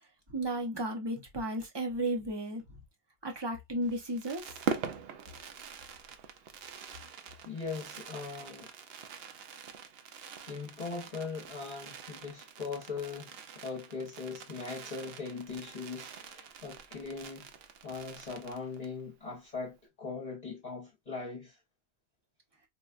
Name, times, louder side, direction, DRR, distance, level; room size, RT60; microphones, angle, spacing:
voice 1, 0.3-2.6 3.2-4.7, right 1 dB, 25° right, 0.7 m, -34 dB
Fireworks, 3.8-19.0 19.3-19.4 19.6-19.9, right 6 dB, 65° right, 0.8 m, -44 dB
voice 2, 7.5-8.7 10.5-17.5 17.8-21.6, left 4 dB, 40° left, 0.9 m, -40 dB
4.3 x 2.2 x 2.3 m
omnidirectional pair, 1.2 m